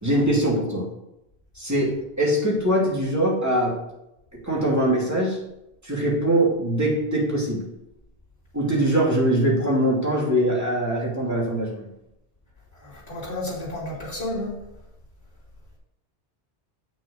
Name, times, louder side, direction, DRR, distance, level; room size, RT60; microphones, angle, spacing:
voice 1, 0.0-0.9 1.6-3.8 4.4-5.4 5.8-7.6 8.5-11.9, right 1 dB, 15° right, -4 dB, 2.6 m, -22 dB
voice 2, 13.1-14.5, left 1 dB, 35° left, -6 dB, 3.1 m, -31 dB
8.0 x 6.0 x 5.2 m, 0.87 s
omnidirectional pair, 1.1 m